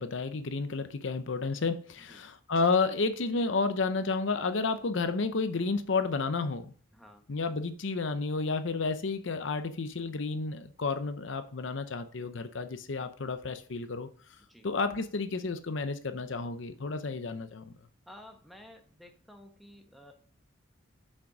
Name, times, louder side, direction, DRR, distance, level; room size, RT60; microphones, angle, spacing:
voice 1, 0.0-6.7 7.3-14.1 14.6-17.7, left 4 dB, 65° left, 0.7 m, -31 dB
voice 2, 6.9-7.2 14.5-14.7 18.1-20.1, left 1 dB, ahead, 1.0 m, -52 dB
6.6 x 6.0 x 4.8 m
head